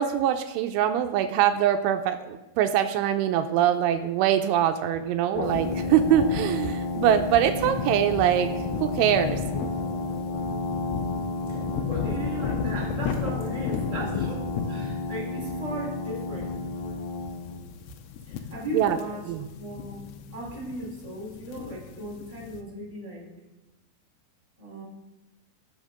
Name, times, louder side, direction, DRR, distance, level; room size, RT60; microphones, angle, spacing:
voice 1, 0.0-8.5 8.8-9.4 18.7-19.0 19.3-19.5, right 10 dB, 85° right, 7 dB, 3.0 m, -23 dB
sound 1, 5.4-22.6, left 6 dB, 90° left, 3.5 m, -35 dB
Brass instrument, 5.4-17.6, left 3 dB, 65° left, 2.9 m, -32 dB
voice 2, 11.9-16.5 18.3-19.3 19.6-23.3 24.6-24.8, right 1 dB, 10° right, -5 dB, 3.5 m, -36 dB
16.0 x 7.3 x 6.5 m, 1.1 s
omnidirectional pair, 5.6 m